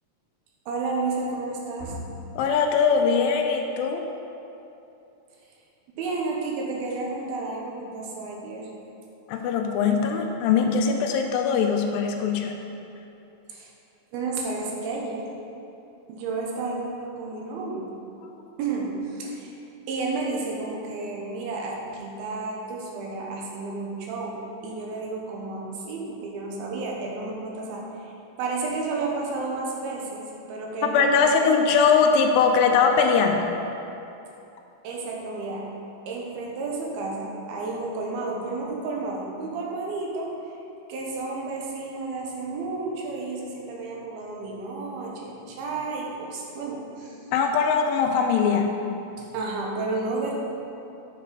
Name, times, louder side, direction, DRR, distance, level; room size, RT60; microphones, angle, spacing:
voice 1, 0.7-2.2 6.0-8.7 13.5-13.7 14.1-15.3 16.1-17.9 18.6-19.5 19.9-28.1 28.4-31.4 34.8-35.7 36.1-40.3 40.9-47.2 49.2-50.3, right 3 dB, 85° right, -1 dB, 2.9 m, -31 dB
voice 2, 2.4-4.0 9.3-12.6 30.8-33.5 47.3-48.7, left 5 dB, 80° left, 4 dB, 2.2 m, -21 dB
8.6 x 6.5 x 4.0 m, 2.8 s
omnidirectional pair, 4.3 m